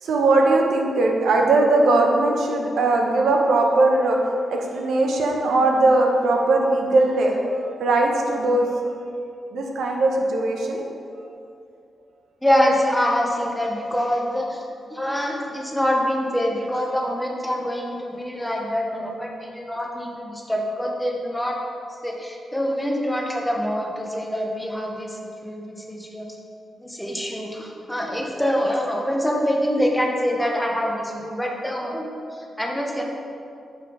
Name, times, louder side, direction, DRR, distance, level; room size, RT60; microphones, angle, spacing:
voice 1, 0.0-4.2 4.5-7.4 7.8-8.8 9.5-10.8, right 2 dB, 80° right, 1 dB, 0.9 m, -19 dB
voice 2, 12.4-14.6 14.9-21.6 22.0-26.3 26.8-33.1, equal, 5° left, 0 dB, 0.8 m, -25 dB
6.8 x 5.3 x 4.9 m, 2.5 s
wide cardioid pair, 145°, 0 cm